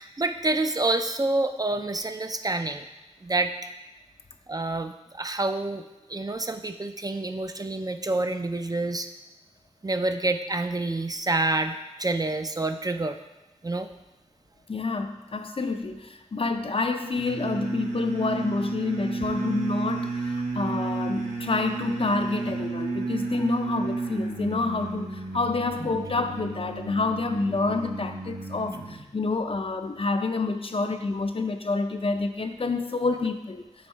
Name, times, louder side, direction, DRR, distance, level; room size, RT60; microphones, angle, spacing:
voice 1, 0.0-2.8 3.2-3.5 4.5-5.8 6.1-9.1 9.8-13.2 13.6-13.9, right 2 dB, 30° right, 7 dB, 0.4 m, -27 dB
voice 2, 14.7-33.7, left 3 dB, 50° left, 7 dB, 0.5 m, -28 dB
sound 1, 17.1-29.0, right 3 dB, 80° right, 0.9 m, -32 dB
6.3 x 3.6 x 4.4 m, 1.0 s
wide cardioid pair, 50°, 12 cm